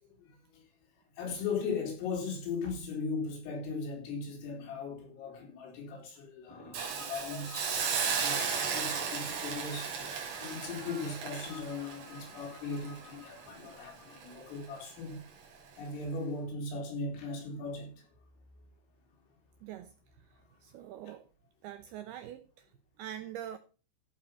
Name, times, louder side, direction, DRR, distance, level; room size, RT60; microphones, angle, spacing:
voice 1, 0.0-0.6 1.2-10.0 10.4-15.2 15.8-18.1 21.1-21.2, left 4 dB, 90° left, 6.8 m, -38 dB
sound 1, 6.5-15.0, left 4 dB, 50° left, 4.8 m, -53 dB
Hiss, 6.7-13.8 14.2-14.3, right 6 dB, 60° right, 4.7 m, -35 dB
voice 2, 19.6-19.9 20.6-21.2 21.6-22.4 23.0-23.6, right 11 dB, 90° right, 2.2 m, -43 dB
14.5 x 7.4 x 5.5 m
omnidirectional pair, 5.7 m